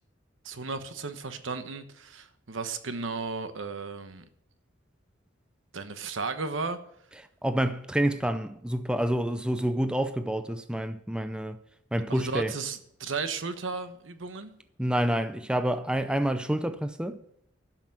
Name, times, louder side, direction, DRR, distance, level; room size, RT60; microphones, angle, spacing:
voice 1, 0.4-4.2 5.7-6.8 12.1-14.6, right 4 dB, 80° right, 1.1 m, -34 dB
voice 2, 7.4-11.6 11.9-12.5 14.8-17.2, right 1 dB, 5° right, 0.5 m, -28 dB
11.5 x 6.0 x 7.7 m
head